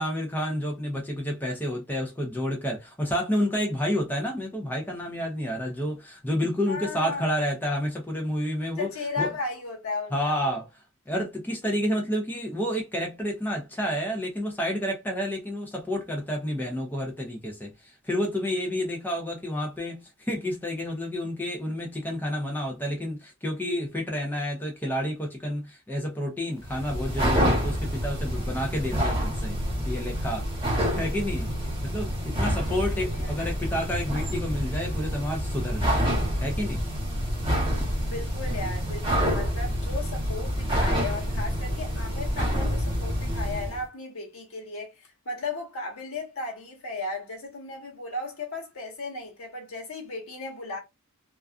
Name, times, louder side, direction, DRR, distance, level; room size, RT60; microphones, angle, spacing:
voice 1, 0.0-8.9 9.2-9.3 10.1-10.6 11.1-29.6 29.8-30.5 30.9-31.5 31.8-36.0 36.4-36.8, equal, 10° left, 0.5 m, -30 dB
voice 2, 6.7-7.3 8.8-10.6 32.7-33.3 38.0-50.8, left 3 dB, 70° left, 1.0 m, -35 dB
sound 1, 26.6-43.8, equal, 25° right, 1.0 m, -27 dB
2.3 x 2.3 x 2.3 m
head